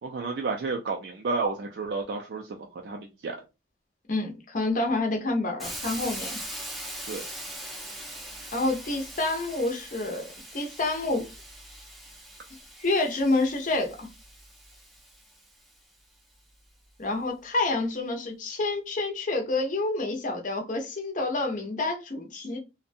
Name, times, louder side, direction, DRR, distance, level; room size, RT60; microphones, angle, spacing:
voice 1, 0.0-3.4 7.1-7.2, right 4 dB, 60° right, 0.4 m, -31 dB
voice 2, 4.1-6.4 8.5-10.2 10.5-11.3 12.8-14.1 17.0-22.6, left 2 dB, 45° left, 0.6 m, -28 dB
Hiss, 5.6-15.5, right 1 dB, ahead, 0.5 m, -41 dB
2.6 x 2.1 x 2.5 m
head